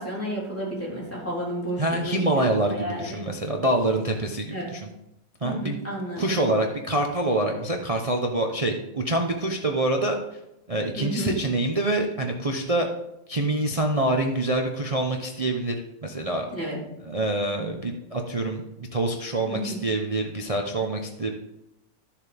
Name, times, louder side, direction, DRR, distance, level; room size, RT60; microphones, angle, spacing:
voice 1, 0.0-2.4 2.7-3.2 4.5-4.7 5.4-6.4 11.0-11.3 16.5-16.8 19.5-19.8, equal, 5° left, -5 dB, 3.6 m, -31 dB
voice 2, 1.8-4.8 5.4-5.8 6.2-10.4 10.7-12.9 13.3-15.7 16.0-16.5 17.0-21.3, right 1 dB, 45° right, 2 dB, 0.4 m, -26 dB
13.0 x 7.2 x 3.5 m, 0.85 s
omnidirectional pair, 2.0 m